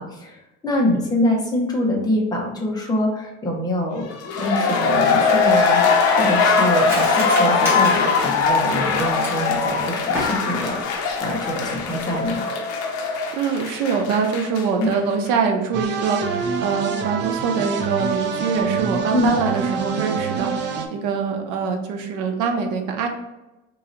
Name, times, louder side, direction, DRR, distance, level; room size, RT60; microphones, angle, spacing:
voice 1, 0.0-4.1 4.4-5.8 6.2-10.8 11.2-12.4 14.8-14.9 19.1-19.3, left 1 dB, 15° left, -2 dB, 0.7 m, -24 dB
sound 1, 4.1-15.0 15.3-15.4, left 4 dB, 55° left, 0.7 m, -21 dB
Cutlery silverware, 5.1-9.6 10.0-10.7 11.0-11.1 11.5-11.8 12.2-12.3, equal, 10° right, 1.2 m, -30 dB
voice 2, 13.3-23.1, right 5 dB, 85° right, 3 dB, 0.7 m, -24 dB
sound 2, 15.7-20.9, right 5 dB, 40° right, 0.5 m, -26 dB
3.1 x 2.7 x 3.8 m, 1.0 s
cardioid pair, 160°, 30 cm